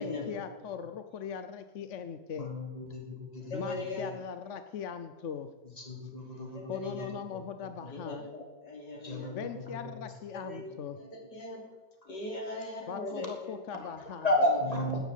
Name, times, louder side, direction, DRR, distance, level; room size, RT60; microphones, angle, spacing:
voice 1, 0.0-2.5 3.5-5.5 6.7-8.3 9.3-11.0 12.9-14.3, left 7 dB, 55° left, 9 dB, 0.9 m, -40 dB
voice 2, 2.3-4.1 5.8-7.4 7.8-8.2 9.0-10.1 11.5-11.6 13.8-13.9 14.2-15.0, left 1 dB, 20° left, 0 dB, 3.1 m, -33 dB
voice 3, 3.5-4.1 4.4-4.5 6.6-7.1 7.9-9.4 10.3-10.6 11.0-11.6 12.1-13.5, left 2 dB, 75° left, 0 dB, 3.6 m, -40 dB
12.5 x 10.5 x 8.4 m, 1.2 s
omnidirectional pair, 1.8 m